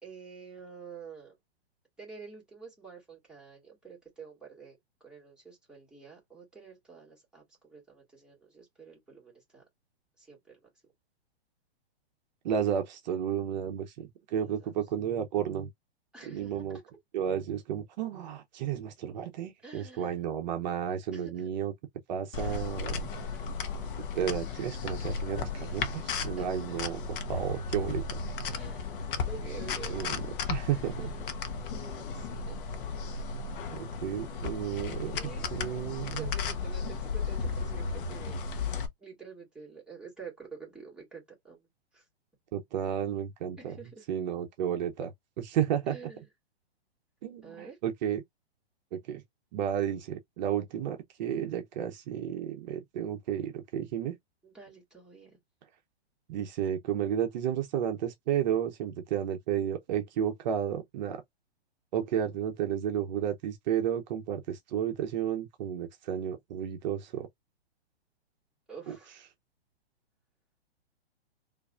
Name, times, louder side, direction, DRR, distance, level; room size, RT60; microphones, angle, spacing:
voice 1, 0.0-1.4 2.0-9.6 10.2-10.7 14.4-14.7 16.1-16.7 19.6-20.2 21.1-21.5 22.3-22.6 22.8-23.5 25.7-25.8 26.4-26.6 28.5-30.7 30.9-31.3 31.7-33.1 34.7-35.5 36.1-38.4 39.0-41.6 41.9-42.0 43.6-44.1 45.9-46.3 47.4-47.8 54.4-55.4 68.7-69.2, right 5 dB, ahead, 2.1 m, -48 dB
voice 2, 12.4-13.9 14.3-15.7 16.3-16.8 17.1-21.7 22.1-22.9 24.1-27.0 27.3-28.0 29.9-30.1 30.5-31.1 33.7-35.2 35.5-36.2 42.5-43.7 44.1-45.1 45.4-46.0 47.2-48.2 48.9-49.2 49.5-54.1 56.3-61.2 61.9-67.3, right 9 dB, 45° right, 0.8 m, -32 dB
sound 1, 22.3-38.9, left 4 dB, 55° left, 0.9 m, -35 dB
4.5 x 2.6 x 2.4 m
hypercardioid pair, 135°, 32 cm